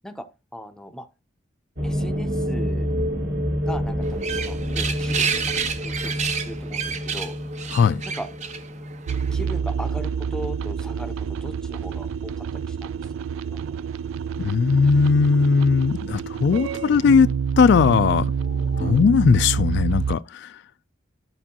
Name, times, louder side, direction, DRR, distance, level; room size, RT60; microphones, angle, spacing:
voice 1, 0.5-1.1 1.8-2.9 3.6-7.4 8.0-8.3 9.3-13.0 13.4-13.7, equal, 5° left, 0.6 m, -38 dB
sound 1, 1.8-11.3 11.5-11.6 11.8-11.9 18.3-18.9, equal, 60° right, 1.6 m, -29 dB
sound 2, 4.0-9.4, right 6 dB, 35° right, 0.6 m, -29 dB
sound 3, 9.1-20.2, right 6 dB, 80° right, 0.3 m, -27 dB
voice 2, 14.4-18.3 18.8-20.6, left 5 dB, 60° left, 0.3 m, -18 dB
11.0 x 5.4 x 2.8 m
head